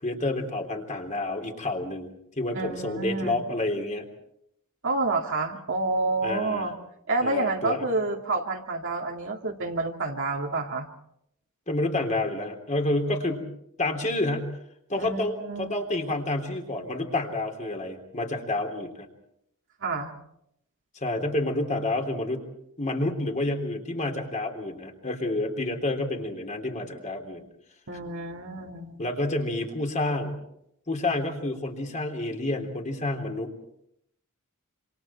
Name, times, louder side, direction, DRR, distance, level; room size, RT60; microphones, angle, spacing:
voice 1, 0.0-4.0 6.2-6.7 7.2-7.8 11.7-13.4 13.8-14.5 14.9-19.1 20.9-22.4 22.8-27.4 29.0-30.4 30.9-33.5, left 2 dB, 35° left, 3 dB, 3.5 m, -29 dB
voice 2, 2.5-3.4 4.8-6.7 7.1-10.9 15.0-15.7 19.8-20.1 27.9-29.0, right 2 dB, 60° right, 0 dB, 2.4 m, -29 dB
27.5 x 27.0 x 4.5 m, 0.76 s
head